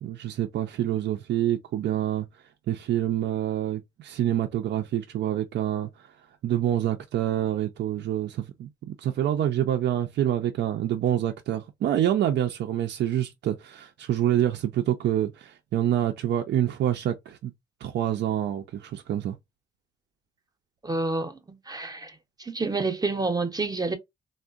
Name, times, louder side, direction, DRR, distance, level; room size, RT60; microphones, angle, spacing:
voice 1, 0.0-2.3 2.7-6.1 6.4-17.5 17.8-19.4, right 11 dB, 60° right, 0.4 m, -27 dB
voice 2, 20.8-22.1 22.4-24.0, right 3 dB, 20° right, 0.7 m, -28 dB
3.5 x 2.1 x 2.4 m
cardioid pair, 90°, 20 cm